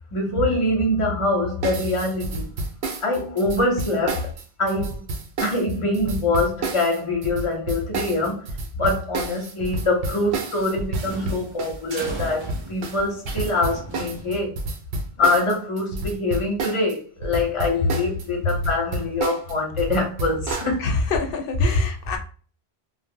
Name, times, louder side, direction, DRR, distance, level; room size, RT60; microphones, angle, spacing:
voice 1, 0.1-2.5 3.0-4.3 4.6-5.0 5.4-8.5 8.8-14.5 15.2-20.8, left 2 dB, 35° left, 0.7 m, -24 dB
sound 1, 1.6-17.0 17.2-20.7, right 2 dB, 85° right, 0.8 m, -30 dB
sound 2, 10.3-14.7, right 2 dB, 35° right, 0.5 m, -38 dB
voice 2, 20.8-22.2, left 4 dB, 70° left, 0.8 m, -27 dB
2.0 x 2.0 x 3.5 m
omnidirectional pair, 1.1 m